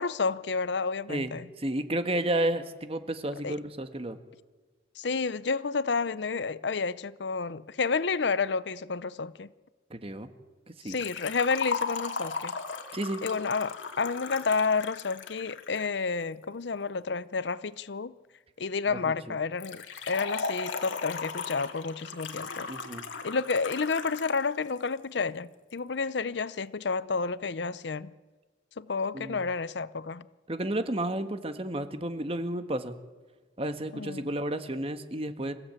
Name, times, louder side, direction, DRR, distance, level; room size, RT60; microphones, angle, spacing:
voice 1, 0.0-1.5 3.4-3.6 5.0-9.5 10.8-12.5 13.2-18.1 18.6-22.7 23.2-28.1 28.8-30.2 33.9-34.3, left 4 dB, 65° left, 0.6 m, -30 dB
voice 2, 1.1-4.2 9.9-10.3 10.8-11.0 12.9-13.2 19.0-19.4 22.7-23.1 29.1-29.4 30.5-32.9 33.6-35.5, right 1 dB, 30° right, 1.5 m, -32 dB
Liquid, 10.9-15.9 19.6-24.4 24.7-24.8 25.7-25.8, left 5 dB, 90° left, 2.2 m, -36 dB
27.0 x 15.5 x 8.9 m
head